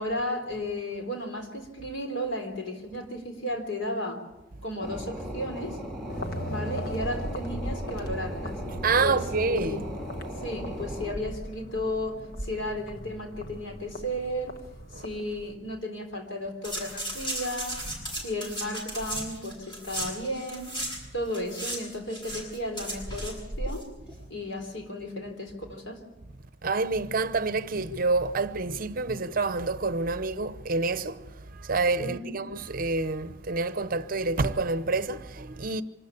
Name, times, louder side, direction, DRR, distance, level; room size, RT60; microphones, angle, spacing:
voice 1, 0.0-4.2 4.6-5.8 6.5-8.6 9.0-9.8 10.4-14.6 14.9-17.8 18.1-20.8 21.1-23.9 24.3-26.0 32.0-32.4, left 1 dB, 80° left, 3.9 m, -34 dB
sound 1, 4.8-11.1, equal, ahead, 2.9 m, -37 dB
sound 2, 6.1-15.5, equal, 50° left, 1.4 m, -38 dB
voice 2, 8.8-9.9 14.9-15.0 26.6-35.8, right 3 dB, 45° right, 0.8 m, -28 dB
sound 3, 16.6-21.0 21.3-23.8 24.1-24.2, right 1 dB, 25° left, 7.5 m, -35 dB
25.0 x 13.5 x 8.5 m
head